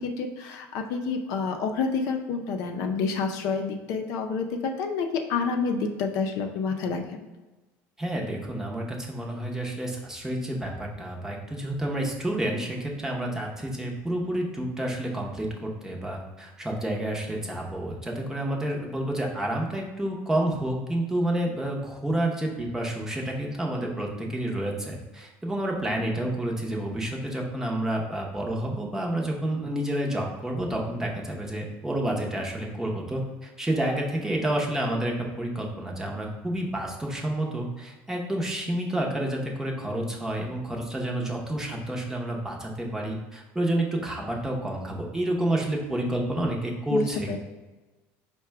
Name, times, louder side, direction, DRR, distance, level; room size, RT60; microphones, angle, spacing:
voice 1, 0.0-7.0 46.9-47.4, left 5 dB, 65° left, 4 dB, 0.5 m, -28 dB
voice 2, 8.0-47.4, right 1 dB, 10° right, -1 dB, 0.7 m, -29 dB
4.7 x 2.2 x 4.6 m, 1.1 s
cardioid pair, 130°, 6 cm